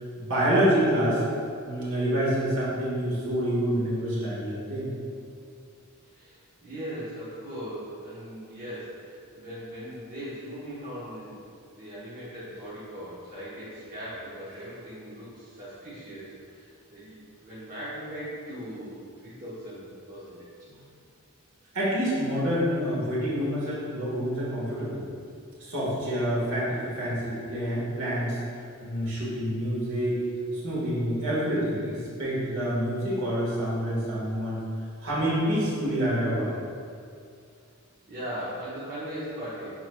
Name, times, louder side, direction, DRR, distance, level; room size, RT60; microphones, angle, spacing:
voice 1, 0.2-1.2 1.6-4.9 21.7-25.0 25.6-28.4 28.8-30.2 30.5-34.6 35.0-36.6, equal, 65° right, -8 dB, 1.5 m, -27 dB
voice 2, 6.1-11.4 11.7-20.5 38.1-39.7, equal, 40° right, -11 dB, 1.0 m, -39 dB
6.0 x 3.8 x 2.2 m, 2.4 s
head